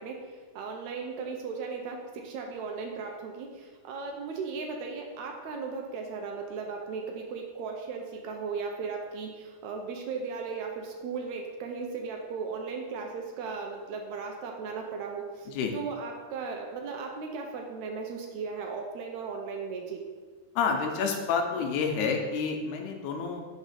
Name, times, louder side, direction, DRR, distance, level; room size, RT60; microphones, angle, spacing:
voice 1, 0.0-20.0, right 5 dB, 80° right, 2 dB, 1.8 m, -36 dB
voice 2, 20.6-23.4, left 5 dB, 80° left, 3 dB, 2.1 m, -29 dB
5.1 x 3.6 x 5.7 m, 1.4 s
omnidirectional pair, 3.5 m